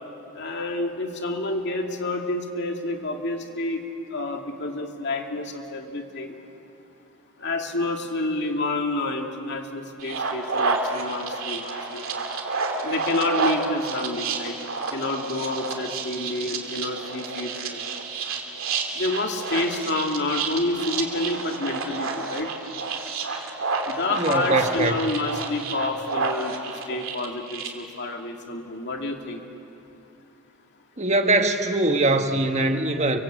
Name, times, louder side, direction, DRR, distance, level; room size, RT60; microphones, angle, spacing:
voice 1, 0.3-3.8 4.1-6.4 7.4-12.1 12.8-14.6 14.9-17.8 18.9-22.5 23.9-29.4, left 2 dB, 55° left, 2 dB, 2.5 m, -29 dB
sound 1, 10.0-27.7, right 4 dB, 65° right, 3.0 m, -30 dB
voice 2, 24.2-24.9 31.0-33.2, right 2 dB, 30° right, 5 dB, 1.4 m, -22 dB
29.0 x 24.5 x 8.3 m, 2.8 s
head